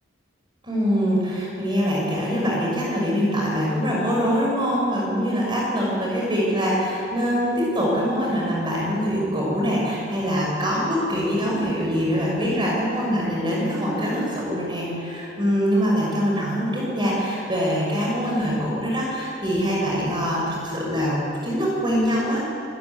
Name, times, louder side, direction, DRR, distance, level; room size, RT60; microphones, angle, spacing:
voice 1, 0.6-22.4, equal, 25° right, -3 dB, 6.3 m, -23 dB
25.0 x 16.5 x 9.9 m, 2.7 s
head